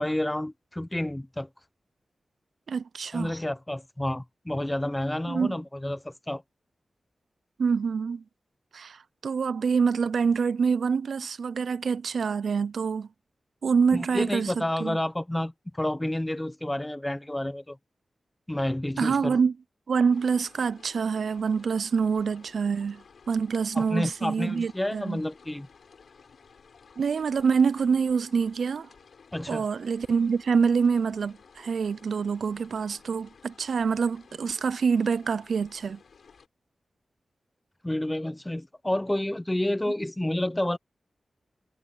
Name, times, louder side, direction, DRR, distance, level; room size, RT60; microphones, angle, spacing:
voice 1, 0.0-1.5 3.1-6.4 13.9-17.8 18.5-19.4 23.7-25.7 29.3-29.7 37.8-40.8, left 1 dB, 15° left, 0.7 m, -30 dB
voice 2, 2.7-3.3 5.3-5.6 7.6-8.2 8.7-13.1 13.6-15.0 19.0-19.5 19.9-25.2 27.0-28.9 29.5-36.0, right 5 dB, 85° right, 0.4 m, -26 dB
sound 1, 20.1-36.5, left 5 dB, 80° left, 5.7 m, -55 dB
wide cardioid pair, 85°, 0 cm